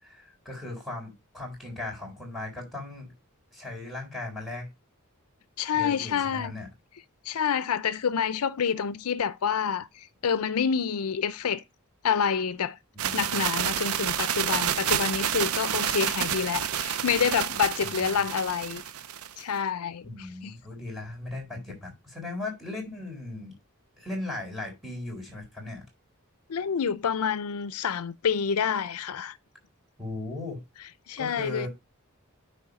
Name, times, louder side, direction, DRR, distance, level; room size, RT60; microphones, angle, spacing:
voice 1, 0.0-3.1 3.5-4.7 5.7-6.7 12.9-13.3 17.8-18.2 20.0-23.5 24.0-25.8 30.0-30.6 31.2-31.7, left 2 dB, ahead, 3.8 m, -37 dB
voice 2, 5.6-6.5 7.3-11.6 12.0-12.8 13.1-18.8 19.4-20.6 26.5-29.4 31.1-31.7, left 7 dB, 85° left, 0.5 m, -28 dB
sound 1, 13.0-19.4, right 9 dB, 80° right, 0.6 m, -29 dB
9.8 x 3.5 x 4.8 m
head